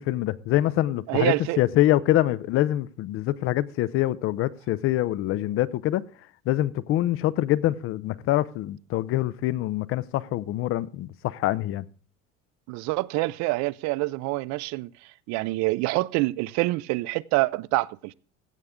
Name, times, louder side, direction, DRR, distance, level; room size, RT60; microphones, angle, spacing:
voice 1, 0.0-6.0 6.5-11.8, left 14 dB, 45° left, 0.6 m, -25 dB
voice 2, 1.1-1.6 12.7-14.9 15.3-18.1, right 21 dB, 60° right, 0.5 m, -26 dB
15.5 x 8.0 x 3.6 m
cardioid pair, 165°, 31 cm